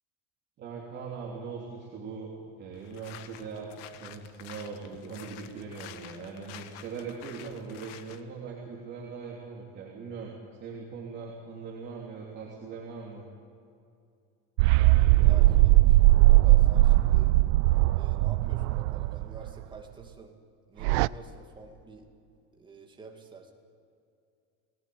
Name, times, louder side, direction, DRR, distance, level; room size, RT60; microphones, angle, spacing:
voice 1, 0.6-3.7 4.0-10.3 10.6-13.3, right 5 dB, 30° right, -3 dB, 3.2 m, -40 dB
sound 1, 2.7-8.2, left 11 dB, 85° left, 1.7 m, -49 dB
sound 2, 14.6-19.5 20.8-21.1, right 18 dB, 70° right, 0.6 m, -20 dB
voice 2, 14.7-17.3 17.9-20.4 20.7-22.1 22.6-23.5, right 4 dB, 15° right, 2 dB, 2.3 m, -48 dB
29.0 x 19.0 x 9.4 m, 2.5 s
cardioid pair, 175°, 36 cm